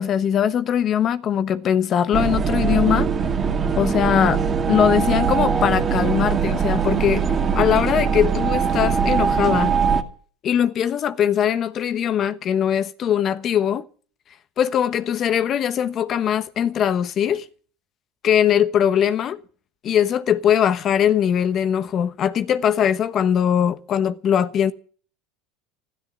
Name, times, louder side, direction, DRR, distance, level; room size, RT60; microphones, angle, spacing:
voice 1, 0.0-3.1 3.8-4.4 4.7-7.2 7.5-9.7 10.4-13.8 14.6-17.5 18.2-19.4 19.8-24.7, left 9 dB, 45° left, 1.1 m, -21 dB
sound 1, 2.1-10.0, right 6 dB, 30° right, 2.2 m, -21 dB
13.0 x 12.5 x 7.5 m
supercardioid pair, 95°, 0 cm